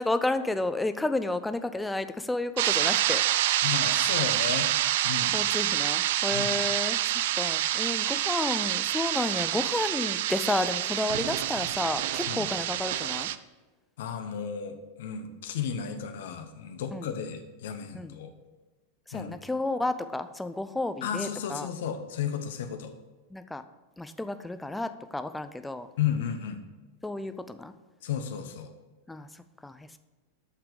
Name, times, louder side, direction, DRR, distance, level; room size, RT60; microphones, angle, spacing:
voice 1, 0.0-3.2 5.3-13.3 16.9-17.2 17.9-18.2 19.1-21.7 23.3-23.6 24.0-25.9 27.0-27.7 29.1-30.0, left 2 dB, 5° left, 10 dB, 0.5 m, -31 dB
sound 1, 2.6-13.4, right 13 dB, 55° right, 0.3 m, -27 dB
voice 2, 3.6-4.7 5.0-5.4 6.3-6.5 12.3-12.5 14.0-18.3 19.1-19.4 21.0-22.9 26.0-26.6 28.0-28.7, left 8 dB, 55° left, 7 dB, 1.0 m, -33 dB
8.3 x 5.8 x 6.6 m, 1.2 s
figure-of-eight pair, 90°, 0 cm